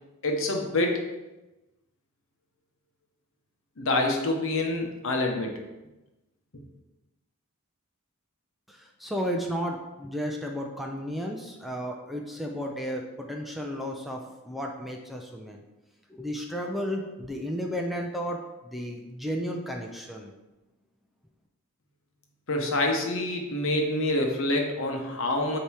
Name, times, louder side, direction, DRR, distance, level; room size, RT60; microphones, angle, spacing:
voice 1, 0.2-1.0 3.8-5.6 22.5-25.6, left 2 dB, 65° left, 2 dB, 1.0 m, -26 dB
voice 2, 8.7-14.2 14.4-15.6 16.1-18.4 18.6-20.3, equal, ahead, 0 dB, 0.5 m, -33 dB
8.5 x 3.0 x 4.8 m, 1.1 s
head